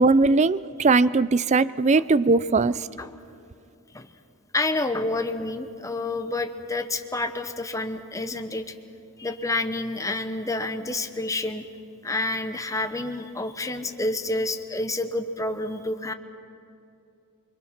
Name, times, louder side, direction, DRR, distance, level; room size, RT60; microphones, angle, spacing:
voice 1, 0.0-2.7, right 3 dB, 35° right, 17 dB, 0.5 m, -19 dB
voice 2, 4.5-8.7 9.2-11.7 12.0-16.1, left 2 dB, 15° left, 7 dB, 1.0 m, -29 dB
28.0 x 22.5 x 5.9 m, 2.6 s
head